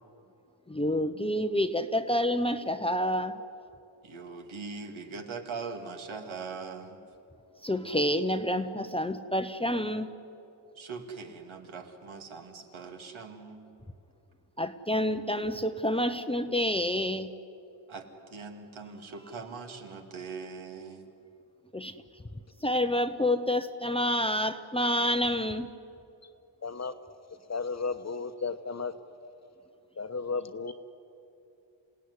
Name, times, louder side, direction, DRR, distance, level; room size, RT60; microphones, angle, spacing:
voice 1, 0.7-3.4 7.6-10.1 14.6-17.3 21.7-21.9 22.6-25.7, left 1 dB, 10° left, 9 dB, 0.8 m, -28 dB
voice 2, 4.0-7.0 10.7-13.8 17.9-21.0, right 4 dB, 75° right, 4 dB, 2.6 m, -41 dB
voice 3, 26.6-26.9 27.5-28.9 30.0-30.7, left 4 dB, 35° left, 9 dB, 1.1 m, -33 dB
27.5 x 17.5 x 9.8 m, 2.7 s
wide cardioid pair, 115°, 48 cm